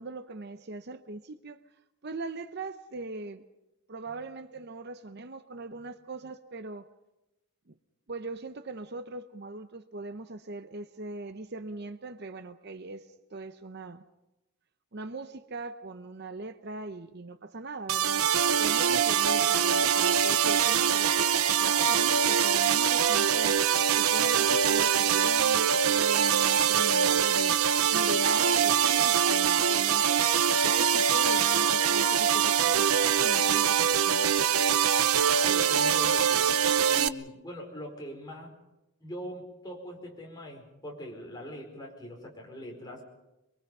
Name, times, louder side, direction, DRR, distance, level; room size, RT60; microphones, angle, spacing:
voice 1, 0.0-1.6 2.0-3.4 3.9-6.9 7.7-7.8 8.1-14.0 14.9-18.3 18.6-23.6 24.0-27.6 27.9-30.2 30.6-34.3, right 2 dB, 50° right, 0.7 m, -40 dB
sound 1, 17.9-37.1, right 8 dB, 80° right, 0.7 m, -24 dB
voice 2, 35.4-36.6 36.9-38.5 39.0-43.0, equal, 20° left, 4.6 m, -42 dB
24.5 x 23.0 x 5.5 m
head